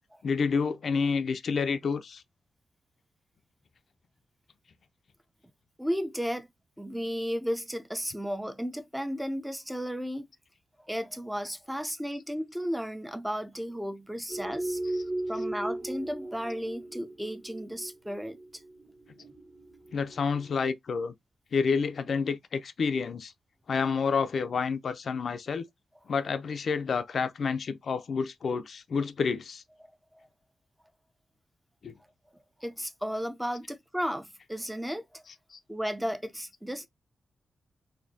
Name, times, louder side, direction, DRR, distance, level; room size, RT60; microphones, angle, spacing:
voice 1, 0.2-2.2 14.8-15.0 19.9-21.1 21.5-23.3 23.7-25.7 26.1-29.6 31.8-31.9 35.3-35.4, left 5 dB, 55° left, 0.4 m, -29 dB
voice 2, 5.8-6.5 6.8-10.3 10.8-14.8 15.3-18.4 30.1-30.3 32.6-35.2 35.7-36.9, equal, 5° right, 0.5 m, -34 dB
sound 1, 14.3-20.4, right 1 dB, 45° right, 1.2 m, -36 dB
4.2 x 2.7 x 2.6 m
wide cardioid pair, 140°, 0 cm